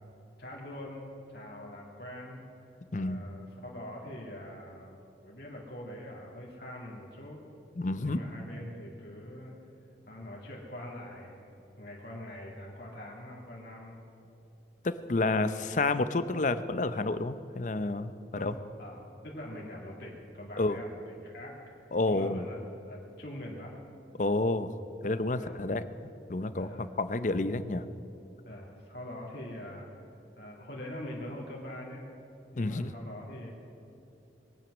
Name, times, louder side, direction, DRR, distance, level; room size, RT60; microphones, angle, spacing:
voice 1, 0.4-2.5 2.9-7.4 8.0-9.6 10.1-14.0 15.2-15.6 18.3-18.5 18.8-22.6 22.9-23.7 25.3-25.5 26.6-26.9 28.4-29.9 30.4-32.1 32.5-33.5, left 1 dB, 60° left, -4 dB, 2.4 m, -44 dB
voice 2, 2.9-3.3 7.8-8.2 14.8-18.5 20.6-20.8 21.9-22.4 24.2-24.7 25.0-25.8 26.3-27.8 32.6-32.9, left 2 dB, 45° left, 12 dB, 0.6 m, -30 dB
22.0 x 9.1 x 6.2 m, 2.9 s
head